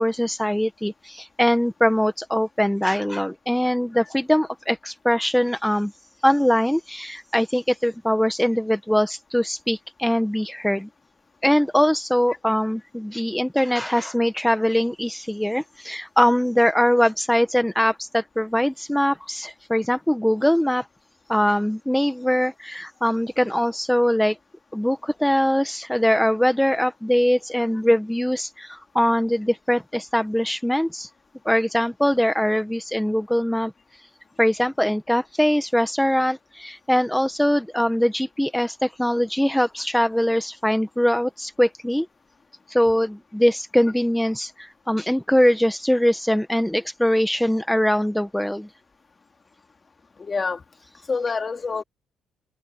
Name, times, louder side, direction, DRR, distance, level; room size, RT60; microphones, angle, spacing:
voice 1, 0.0-5.9 6.2-10.9 11.4-20.9 21.3-24.4 24.7-31.1 31.4-33.7 34.4-42.1 42.7-48.7, equal, 5° left, 1.2 m, -22 dB
voice 2, 50.2-50.6 51.1-51.8, left 4 dB, 35° left, 2.5 m, -26 dB
cardioid pair, 90°, 0 cm